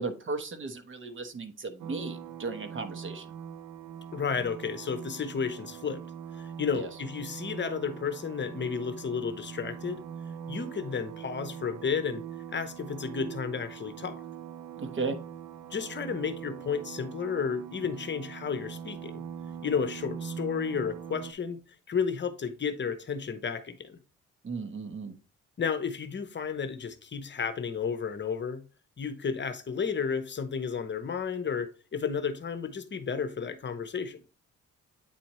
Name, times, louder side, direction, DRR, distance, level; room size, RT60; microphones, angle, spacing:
voice 1, 0.0-3.2 6.8-6.9 14.8-15.2 24.4-25.1, right 3 dB, 40° right, 1.2 m, -35 dB
sound 1, 1.8-21.3, right 8 dB, 75° right, 0.6 m, -42 dB
voice 2, 4.1-6.0 6.3-10.0 10.5-14.2 15.7-19.2 19.6-21.6 21.9-24.0 25.6-28.6 29.0-34.2, left 6 dB, 35° left, 0.9 m, -32 dB
8.9 x 4.2 x 3.1 m
cardioid pair, 90°, 30 cm